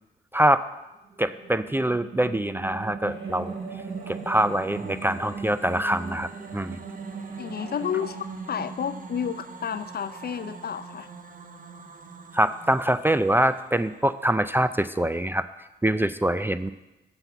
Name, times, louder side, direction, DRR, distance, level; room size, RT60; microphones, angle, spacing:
voice 1, 0.3-0.6 1.2-3.5 4.1-6.8 12.3-15.4 15.8-16.7, right 1 dB, 10° right, 13 dB, 0.4 m, -24 dB
sound 1, 1.0-14.4, right 5 dB, 40° right, 1.0 m, -39 dB
sound 2, 3.0-8.1, right 1 dB, 25° right, 3.1 m, -49 dB
voice 2, 7.4-8.2 8.5-11.1, left 8 dB, 50° left, 13 dB, 0.6 m, -31 dB
7.7 x 5.9 x 6.9 m, 1.0 s
supercardioid pair, 45°, 20 cm